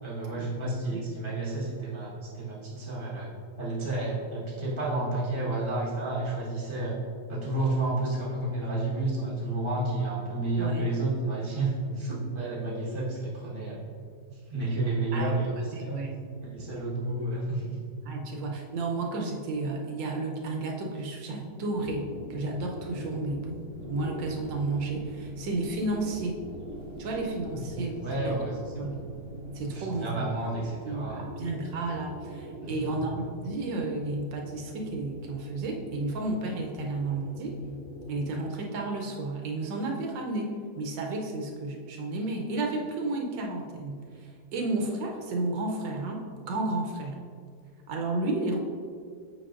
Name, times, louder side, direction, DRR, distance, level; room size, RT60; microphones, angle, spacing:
voice 1, 0.0-3.3 3.6-7.0 7.3-13.8 14.3-16.0 16.4-17.8 18.3-18.4 27.5-29.0 29.7-31.3 32.6-32.9, right 2 dB, 20° right, -6 dB, 1.1 m, -31 dB
voice 2, 15.7-16.3 18.1-26.4 27.0-28.4 28.8-29.0 29.5-30.3 30.8-37.6 38.1-47.2 47.9-48.6, right 2 dB, 80° right, 1 dB, 1.4 m, -32 dB
sound 1, 21.7-38.2, equal, 40° left, 0.7 m, -44 dB
sound 2, 23.7-29.6, right 2 dB, 60° right, 0.4 m, -48 dB
7.9 x 5.4 x 2.5 m, 2.2 s
omnidirectional pair, 2.0 m